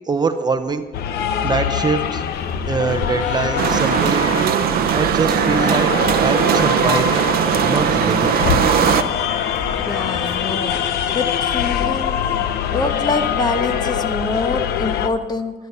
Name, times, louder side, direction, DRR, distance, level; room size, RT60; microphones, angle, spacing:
voice 1, 0.1-0.8 1.4-2.2 2.7-5.9 6.2-7.3 7.6-8.4, right 4 dB, 25° right, 8 dB, 0.8 m, -23 dB
sound 1, 0.9-15.1, left 8 dB, 70° left, 0.9 m, -23 dB
sound 2, 2.3-10.4, left 2 dB, 45° left, 2.9 m, -38 dB
sound 3, 3.6-9.0, right 10 dB, 65° right, 0.7 m, -18 dB
voice 2, 9.8-12.2 12.7-15.5, left 3 dB, 25° left, 8 dB, 1.1 m, -25 dB
12.5 x 11.5 x 5.5 m, 1.2 s
cardioid pair, 110°, 17 cm